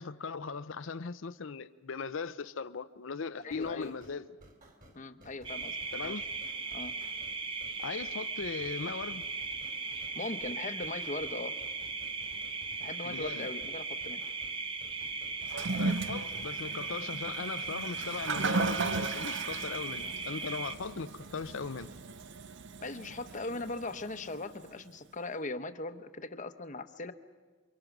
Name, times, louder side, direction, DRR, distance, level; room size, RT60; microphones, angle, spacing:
voice 1, 0.0-4.3 5.9-6.3 7.8-9.3 13.0-13.5 15.8-21.9, left 5 dB, 65° left, 0.6 m, -39 dB
sound 1, 3.3-22.0, right 1 dB, 40° right, 3.2 m, -57 dB
voice 2, 3.4-3.9 4.9-5.8 6.0-6.3 6.7-6.9 10.1-11.6 12.8-14.2 22.8-27.1, left 2 dB, 35° left, 1.0 m, -39 dB
sound 2, 5.4-20.7, right 4 dB, 25° right, 0.8 m, -38 dB
Toilet flush, 15.4-24.7, right 3 dB, 60° right, 0.7 m, -37 dB
28.5 x 24.5 x 6.1 m
head